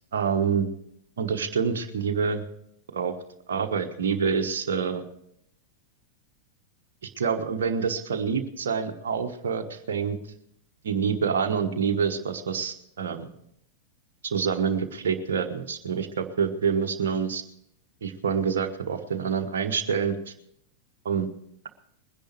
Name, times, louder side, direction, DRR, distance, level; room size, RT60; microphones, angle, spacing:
voice 1, 0.1-0.7 1.2-2.4 2.9-3.1 3.5-5.0 7.0-10.2 10.8-13.3 14.2-17.4 18.0-20.3 21.0-21.3, right 6 dB, 65° right, 5 dB, 1.2 m, -27 dB
20.5 x 10.5 x 4.6 m, 0.73 s
figure-of-eight pair, 90°, 0 cm